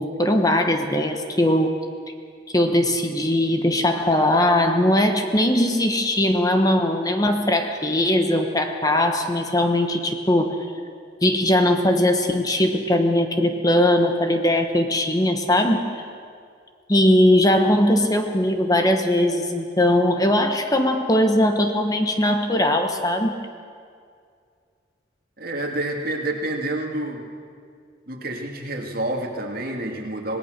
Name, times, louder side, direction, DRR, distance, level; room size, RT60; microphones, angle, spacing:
voice 1, 0.0-1.8 2.5-10.7 11.2-15.9 16.9-23.4, left 1 dB, 20° left, 5 dB, 1.1 m, -20 dB
voice 2, 25.4-27.3 28.1-30.4, right 1 dB, 50° right, 1 dB, 2.5 m, -28 dB
26.0 x 18.5 x 6.6 m, 2.2 s
head